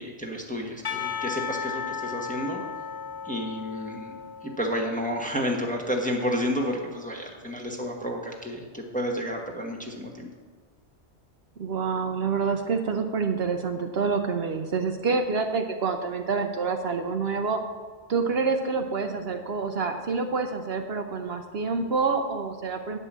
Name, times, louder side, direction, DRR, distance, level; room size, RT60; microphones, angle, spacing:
voice 1, 0.0-2.6 3.2-4.1 4.4-10.3, equal, 5° left, 0 dB, 1.1 m, -31 dB
Percussion / Church bell, 0.8-5.3, left 7 dB, 35° left, 0.4 m, -35 dB
voice 2, 11.6-17.6 18.1-23.0, right 4 dB, 60° right, 5 dB, 0.9 m, -27 dB
9.6 x 5.5 x 7.3 m, 1.4 s
omnidirectional pair, 1.2 m